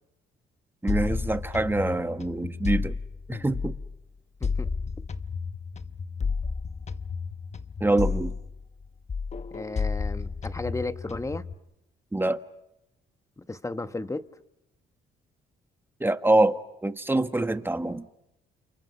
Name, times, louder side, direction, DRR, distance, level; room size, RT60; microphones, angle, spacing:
voice 1, 0.8-2.9 3.3-3.7 7.8-8.3 12.1-12.4 16.0-18.0, right 2 dB, 10° right, 1.5 m, -25 dB
sound 1, 0.9-4.0 4.4-8.8 9.1-11.5, left 5 dB, 35° left, 1.1 m, -32 dB
voice 2, 4.4-4.7 9.5-11.4 13.4-14.3, left 2 dB, 15° left, 1.2 m, -34 dB
29.5 x 28.5 x 5.5 m
cardioid pair, 90°, 20 cm